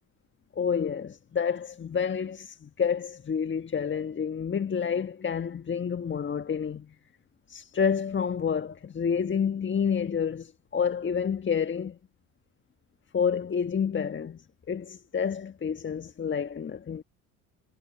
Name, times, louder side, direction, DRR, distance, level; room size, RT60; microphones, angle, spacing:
voice 1, 0.5-6.9 7.5-12.0 13.1-17.0, left 7 dB, 25° left, 1.4 m, -29 dB
hypercardioid pair, 60°, 42 cm